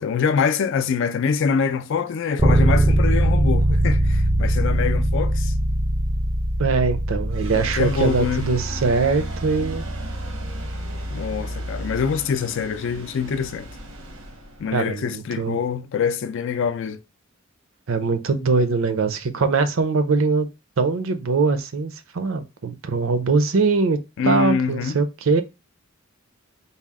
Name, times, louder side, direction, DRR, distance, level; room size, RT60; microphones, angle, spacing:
voice 1, 0.0-5.5 7.5-8.5 11.1-13.7 14.6-17.0 24.2-25.0, left 6 dB, 60° left, 0.4 m, -24 dB
Bass guitar, 2.4-12.2, right 1 dB, 15° right, 0.4 m, -22 dB
voice 2, 6.6-9.8 14.7-15.6 17.9-20.5 20.8-24.0 24.2-25.4, right 4 dB, 70° right, 0.5 m, -22 dB
sound 1, 7.3-15.8, right 2 dB, 85° right, 0.9 m, -40 dB
4.1 x 2.0 x 3.5 m
head